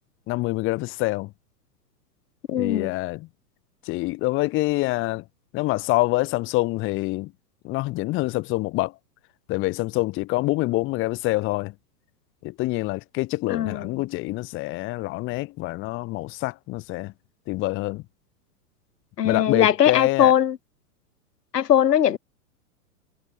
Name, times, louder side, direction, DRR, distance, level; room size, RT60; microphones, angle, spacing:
voice 1, 0.3-1.3 2.5-3.3 3.8-5.2 5.5-7.3 7.6-8.9 9.5-11.7 12.4-17.1 17.5-18.0 19.2-20.3, left 20 dB, 25° left, 1.0 m, -26 dB
voice 2, 2.5-2.9 13.5-13.9 19.2-20.6 21.5-22.2, left 10 dB, 90° left, 1.5 m, -20 dB
hypercardioid pair, 130°, 47 cm